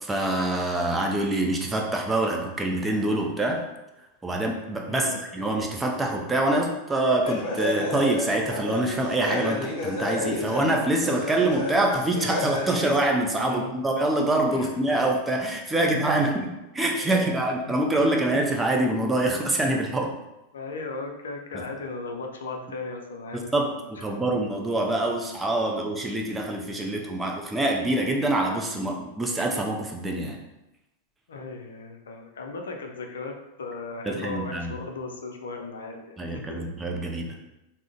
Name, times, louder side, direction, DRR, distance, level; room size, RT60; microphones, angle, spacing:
voice 1, 0.0-3.6 4.2-20.2 21.5-21.6 23.5-30.4 34.1-34.8 36.2-37.4, right 1 dB, 10° right, 1 dB, 0.5 m, -25 dB
voice 2, 4.9-5.2 13.5-13.7 14.5-14.7 15.8-15.9 16.9-17.3 17.7-17.8 18.0-18.2 20.5-23.9 31.3-36.7, left 3 dB, 65° left, 3 dB, 0.5 m, -37 dB
sound 1, 7.2-13.0, left 2 dB, 45° left, 1.0 m, -31 dB
3.6 x 2.1 x 3.7 m, 0.94 s
figure-of-eight pair, 90°, 0 cm